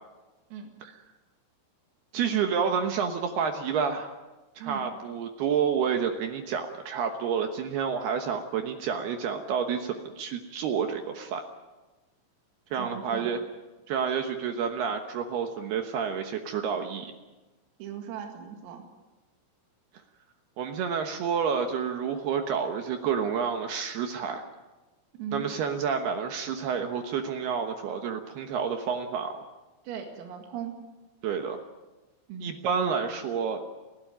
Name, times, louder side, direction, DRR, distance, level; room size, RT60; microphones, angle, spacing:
voice 1, 2.1-4.2 4.6-11.4 12.7-13.4 13.9-17.1 20.6-24.4 25.3-29.4 31.2-31.6 32.4-33.6, right 6 dB, 70° right, 5 dB, 2.7 m, -29 dB
voice 2, 12.8-13.3 17.8-18.8 25.1-25.5 29.8-30.8 32.3-32.6, right 8 dB, 90° right, 3 dB, 4.8 m, -38 dB
29.5 x 12.5 x 9.2 m, 1.1 s
omnidirectional pair, 5.8 m